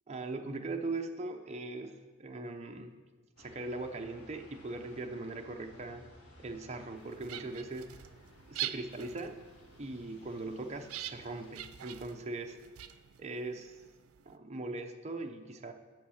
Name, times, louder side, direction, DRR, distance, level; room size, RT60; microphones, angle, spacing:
voice 1, 0.1-1.9 2.2-2.9 3.4-6.0 6.4-7.9 8.5-9.4 9.8-12.6 13.2-13.8 14.3-15.7, right 2 dB, 30° right, 4 dB, 0.6 m, -40 dB
sound 1, 3.4-11.5, left 1 dB, 85° left, 1.6 m, -58 dB
sound 2, 7.0-14.4, right 12 dB, 85° right, 0.4 m, -45 dB
7.7 x 5.7 x 7.0 m, 1.3 s
head